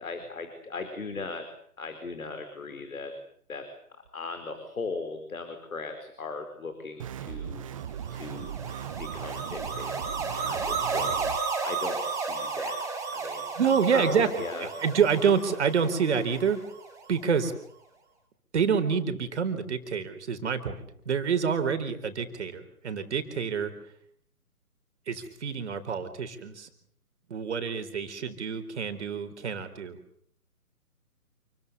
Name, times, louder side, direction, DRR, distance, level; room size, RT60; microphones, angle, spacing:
voice 1, 0.0-1.4 1.8-3.1 3.5-3.6 4.1-7.6 8.1-8.5 9.0-11.2 11.6-13.4 13.9-14.7, left 4 dB, 65° left, 7 dB, 4.9 m, -38 dB
sound 1, 7.0-11.4, right 9 dB, 20° right, 1.0 m, -38 dB
sound 2, 7.8-17.1, right 4 dB, 5° right, 4.8 m, -33 dB
voice 2, 13.6-16.6 17.1-17.5 18.5-23.7 25.1-26.7 27.3-30.0, right 6 dB, 45° right, 9 dB, 4.3 m, -27 dB
29.0 x 23.0 x 6.9 m, 0.64 s
figure-of-eight pair, 140°, 45 cm